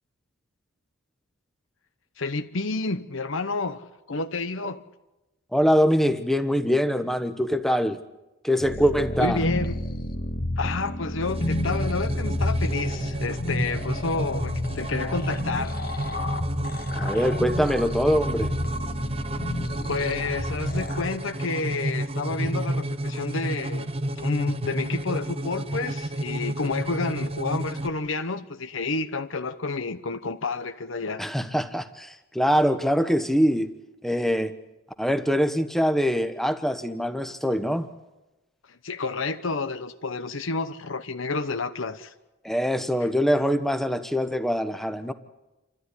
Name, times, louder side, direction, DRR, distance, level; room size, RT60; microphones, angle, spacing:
voice 1, 2.2-4.8 9.2-9.8 10.6-15.8 19.9-31.2 38.7-42.1, left 3 dB, 70° left, 1.0 m, -30 dB
voice 2, 5.5-8.0 8.4-9.4 16.9-18.5 31.2-33.7 34.0-34.5 35.0-37.9 42.4-45.1, equal, ahead, 1.0 m, -23 dB
sound 1, 8.6-21.1, left 1 dB, 45° left, 1.7 m, -30 dB
sound 2, 11.2-27.9, right 1 dB, 30° right, 0.9 m, -31 dB
28.0 x 13.5 x 9.8 m
head